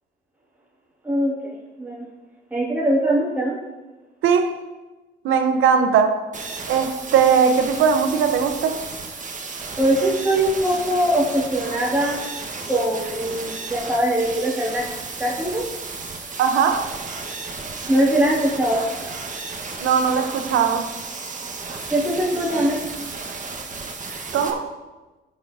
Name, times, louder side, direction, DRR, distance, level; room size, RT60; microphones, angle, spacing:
voice 1, 2.5-3.5 9.8-12.2 12.7-14.8 15.2-15.6 17.9-18.8 21.9-22.8, right 1 dB, 10° right, 2.5 m, -21 dB
voice 2, 4.2-4.6 5.2-6.2 6.7-8.8 16.4-16.9 19.8-20.9 24.3-24.7, right 6 dB, 85° right, 1.1 m, -19 dB
sound 1, 6.3-24.5, right 4 dB, 40° right, 1.5 m, -33 dB
16.0 x 7.3 x 2.8 m
cardioid pair, 90°, 20 cm